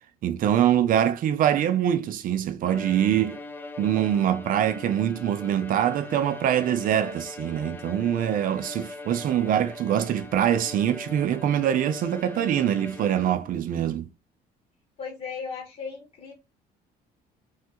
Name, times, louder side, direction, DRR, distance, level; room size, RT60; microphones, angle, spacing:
voice 1, 0.2-3.4 3.8-14.1, right 10 dB, 55° right, 0.5 m, -24 dB
Bowed string instrument, 2.6-13.6, left 2 dB, 10° left, 0.5 m, -41 dB
voice 2, 15.0-16.3, left 5 dB, 45° left, 1.1 m, -36 dB
3.2 x 2.3 x 2.9 m
cardioid pair, 110°, 17 cm